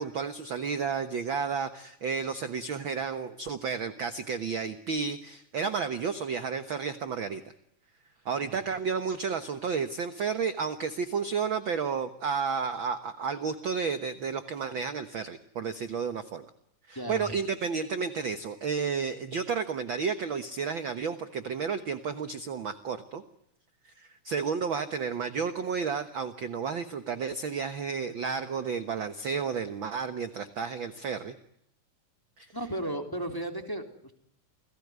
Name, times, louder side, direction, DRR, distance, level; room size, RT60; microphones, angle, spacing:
voice 1, 0.0-7.4 8.2-16.5 16.9-23.2 23.8-31.3 32.4-32.5, right 5 dB, 50° right, 10 dB, 1.7 m, -32 dB
voice 2, 16.9-17.3 32.5-34.1, right 1 dB, 5° left, 5 dB, 3.3 m, -35 dB
29.5 x 19.0 x 9.5 m, 0.73 s
omnidirectional pair, 3.3 m